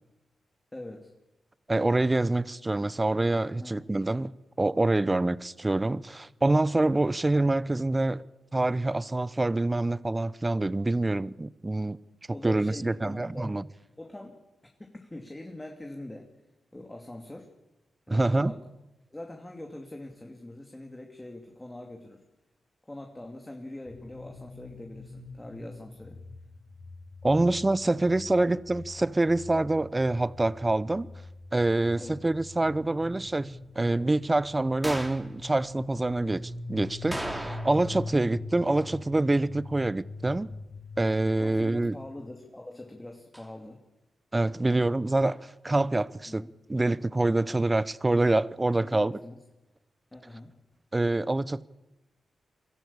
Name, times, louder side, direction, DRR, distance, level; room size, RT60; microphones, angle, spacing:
voice 1, 0.7-1.1 3.6-3.9 12.3-13.5 14.0-14.4 14.8-16.3 16.7-17.5 18.1-18.6 19.1-22.2 22.9-26.2 27.4-27.6 28.2-28.5 31.9-32.2 38.1-38.4 41.4-43.8 44.6-44.9 46.3-46.5 48.8-49.4 50.1-50.5, left 1 dB, 20° left, 2.6 m, -43 dB
voice 2, 1.7-8.2 8.5-12.0 12.4-13.7 18.1-18.5 27.2-31.1 31.5-40.5 41.0-41.9 44.3-49.1 50.9-51.6, right 2 dB, 25° right, 0.8 m, -26 dB
sound 1, 23.8-42.1, left 3 dB, 70° left, 4.8 m, -44 dB
sound 2, 34.8-35.3 37.1-38.0 38.2-38.3 43.3-43.5, right 1 dB, 10° right, 2.9 m, -35 dB
23.5 x 14.0 x 8.6 m
supercardioid pair, 45°, 0 cm